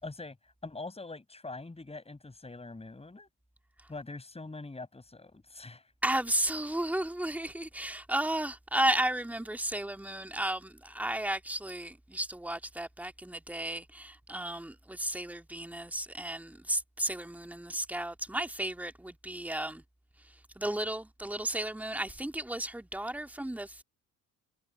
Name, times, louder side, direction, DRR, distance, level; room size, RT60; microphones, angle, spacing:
voice 1, 0.0-3.3 3.9-5.9, left 3 dB, 15° left, 6.5 m, -44 dB
voice 2, 6.0-19.8 20.2-23.8, right 1 dB, 5° right, 1.9 m, -34 dB
cardioid pair, 100°, 38 cm